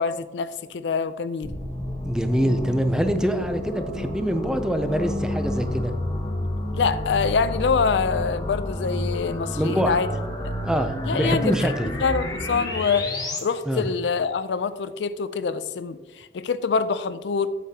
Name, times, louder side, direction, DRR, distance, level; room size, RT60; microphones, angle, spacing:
voice 1, 0.0-1.5 6.7-10.1 10.4-10.5 11.0-11.7 12.0-13.1 13.4-17.5, left 5 dB, 85° left, 13 dB, 0.4 m, -25 dB
sound 1, 1.4-13.4, left 1 dB, 20° left, 1.1 m, -30 dB
voice 2, 2.0-5.9 9.6-10.0 10.6-11.9 13.7-13.9, equal, 5° right, 7 dB, 0.5 m, -25 dB
8.2 x 7.5 x 2.8 m, 1.3 s
head